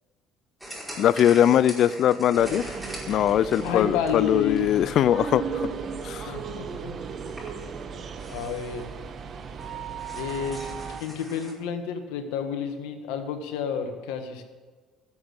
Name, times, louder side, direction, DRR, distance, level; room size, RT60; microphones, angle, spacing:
sound 1, 0.6-5.0 5.4-5.6 6.4-6.5 6.6-6.7 7.3-7.7 8.2-8.9 9.3-9.4 9.6-11.5, right 1 dB, 5° right, 5.0 m, -42 dB
voice 1, 1.0-2.7 3.1-5.7 6.0-6.3, left 10 dB, 60° left, 19 dB, 0.4 m, -21 dB
sound 2, 2.4-11.0, right 6 dB, 45° right, 1.5 m, -36 dB
voice 2, 3.6-5.1 6.3-7.0 8.3-8.9 10.1-10.6 11.0-14.4, left 7 dB, 80° left, 6 dB, 1.7 m, -30 dB
14.0 x 7.5 x 8.1 m, 1.4 s
supercardioid pair, 80°, 0 cm